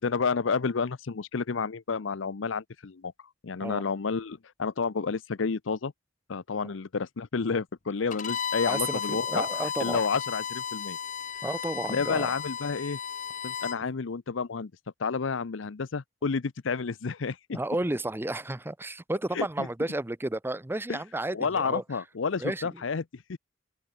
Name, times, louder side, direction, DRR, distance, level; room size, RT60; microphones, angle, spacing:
voice 1, 0.0-3.1 3.4-5.9 6.3-9.5 9.8-11.0 11.9-13.0 13.4-14.7 15.0-17.6 19.3-19.7 20.9-21.0 21.3-23.4, left 5 dB, 80° left, 0.7 m, -30 dB
Bowed string instrument, 8.1-13.8, left 7 dB, 40° left, 0.9 m, -34 dB
voice 2, 8.6-10.0 11.4-12.3 17.5-22.1 22.4-22.8, right 1 dB, 10° right, 0.6 m, -32 dB
open air
head